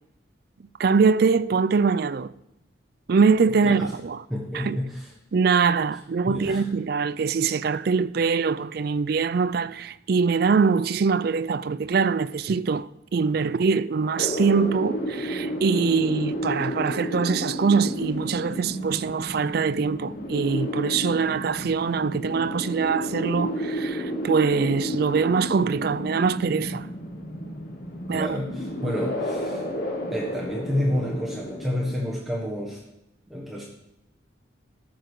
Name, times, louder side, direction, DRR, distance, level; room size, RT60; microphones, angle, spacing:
voice 1, 0.8-2.3 3.1-4.2 4.5-4.8 5.3-26.9 27.5-27.6 28.1-28.4 28.8-28.9, right 5 dB, 50° right, 0.4 m, -23 dB
voice 2, 4.3-5.0 6.3-6.6 28.1-29.6 30.1-32.8 33.3-33.6, left 1 dB, ahead, 1.4 m, -29 dB
sound 1, 14.2-31.9, equal, 45° left, 1.8 m, -32 dB
14.0 x 5.1 x 6.4 m
head